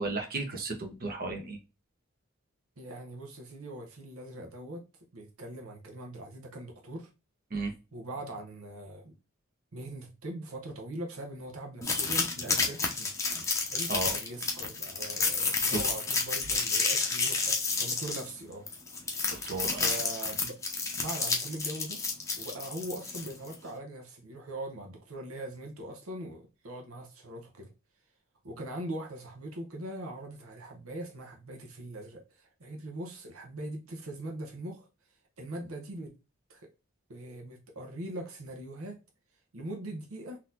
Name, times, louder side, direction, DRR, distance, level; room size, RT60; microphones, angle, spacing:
voice 1, 0.0-1.6 7.5-7.7 13.9-14.1 19.2-19.9, right 3 dB, 40° right, 1.0 m, -34 dB
voice 2, 2.8-4.8 5.1-7.1 7.9-9.1 9.7-13.2 13.7-18.7 19.0-19.4 19.7-20.5 21.0-22.0 22.4-27.7 28.4-34.9 35.4-36.1 36.5-36.7 37.1-39.0 39.5-40.4, right 1 dB, 75° right, 0.8 m, -41 dB
sound 1, 11.8-23.5, left 4 dB, 15° left, 0.8 m, -30 dB
3.9 x 2.8 x 2.5 m
head